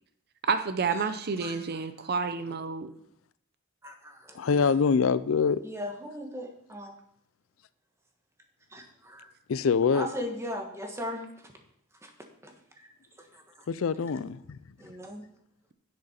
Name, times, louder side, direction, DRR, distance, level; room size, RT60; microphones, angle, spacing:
voice 1, 0.4-2.9, right 5 dB, 50° right, 0.6 m, -29 dB
voice 2, 3.8-4.6 5.6-7.0 8.7-9.3 9.9-11.5 12.0-12.1 12.4-12.5 13.3-13.4 14.8-15.2, equal, 15° right, 1.4 m, -38 dB
voice 3, 4.4-5.6 9.5-10.1 13.7-14.6, left 5 dB, 75° left, 0.4 m, -24 dB
10.5 x 7.7 x 4.4 m
head